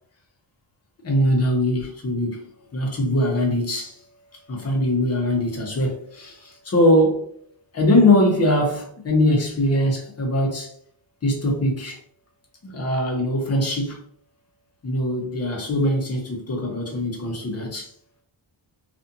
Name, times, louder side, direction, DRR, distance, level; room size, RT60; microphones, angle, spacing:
voice 1, 1.0-2.4 2.7-4.0 4.5-7.3 7.7-10.7 11.2-12.0 12.6-14.0 14.8-17.9, left 1 dB, 30° left, 0.8 m, -21 dB
2.5 x 2.4 x 2.7 m
wide cardioid pair, 125°, 47 cm